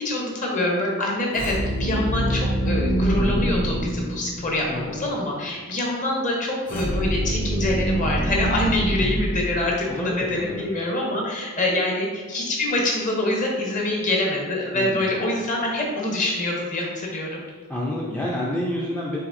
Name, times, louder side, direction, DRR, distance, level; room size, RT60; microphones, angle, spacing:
voice 1, 0.0-17.4, left 1 dB, 35° left, -2 dB, 0.9 m, -25 dB
sound 1, 1.3-4.7 6.7-9.9, right 1 dB, 55° left, 1.2 m, -25 dB
voice 2, 4.7-5.0 8.9-9.0 9.3-9.4 9.9-10.6 14.7-15.1 17.7-19.2, left 1 dB, 5° left, -5 dB, 0.4 m, -29 dB
5.7 x 3.4 x 2.6 m, 1.4 s
head